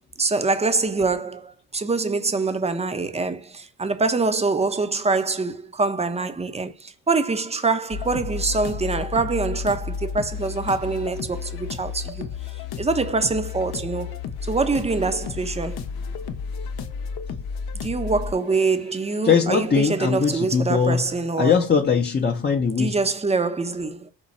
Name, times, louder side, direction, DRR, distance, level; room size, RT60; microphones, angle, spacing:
voice 1, 0.2-12.3 12.8-15.8 17.8-21.6 22.8-24.1, right 3 dB, 15° right, 0.6 m, -24 dB
sound 1, 7.9-20.7, left 5 dB, 60° left, 0.8 m, -33 dB
voice 2, 19.2-21.1 21.4-23.0, left 6 dB, 25° left, 0.7 m, -21 dB
5.2 x 2.2 x 4.1 m
cardioid pair, 80°, 44 cm